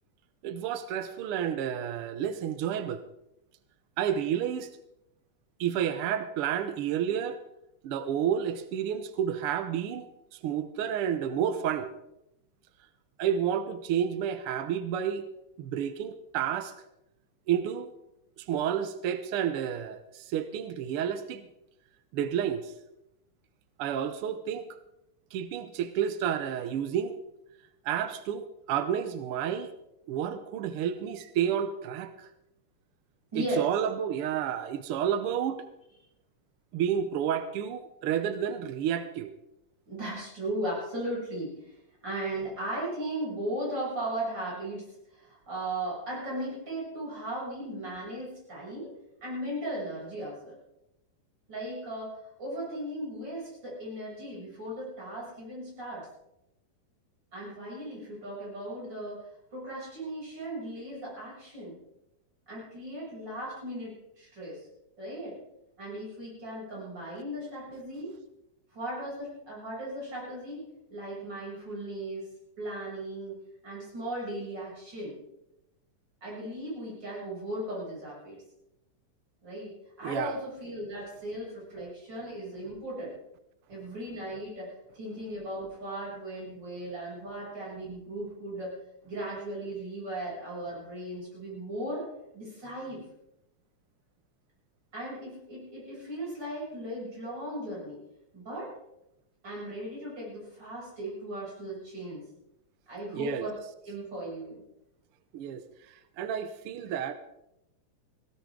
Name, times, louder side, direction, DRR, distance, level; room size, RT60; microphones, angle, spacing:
voice 1, 0.4-3.0 4.0-4.7 5.6-7.4 7.8-10.1 10.4-11.9 13.2-15.2 15.6-16.7 17.5-17.9 18.4-21.4 22.1-22.7 23.8-24.7 25.3-27.2 27.8-29.7 30.1-32.3 33.3-35.6 36.7-39.3 80.0-80.4 103.1-103.5 105.3-105.6 106.2-107.1, right 9 dB, 80° right, 10 dB, 1.2 m, -30 dB
voice 2, 33.3-33.6 39.9-41.7 42.0-44.9 45.1-48.9 49.2-50.6 51.5-56.1 57.3-61.7 62.5-64.7 65.0-65.4 65.8-68.1 68.7-70.6 70.9-72.3 72.6-73.4 73.6-75.1 76.2-78.4 79.4-79.7 80.0-83.2 83.7-88.8 89.0-92.0 92.3-93.0 94.9-98.0 98.3-98.7 99.4-102.2 102.9-103.5 103.8-104.6, right 1 dB, 35° right, -5 dB, 7.9 m, -37 dB
17.5 x 16.5 x 3.8 m, 0.86 s
omnidirectional pair, 3.5 m